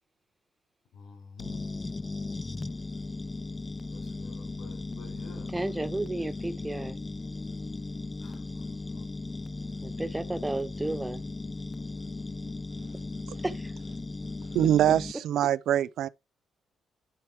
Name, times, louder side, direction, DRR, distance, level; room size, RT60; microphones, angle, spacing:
voice 1, 0.9-1.7 3.7-5.7 8.2-9.1, left 6 dB, 80° left, 5.8 m, -50 dB
sound 1, 1.4-15.1, left 3 dB, 25° left, 0.4 m, -37 dB
voice 2, 5.5-7.0 9.8-11.2 13.4-13.7, right 2 dB, 15° right, 1.2 m, -32 dB
voice 3, 14.5-16.1, right 11 dB, 75° right, 0.5 m, -24 dB
11.0 x 4.6 x 4.6 m
cardioid pair, 90°, 0 cm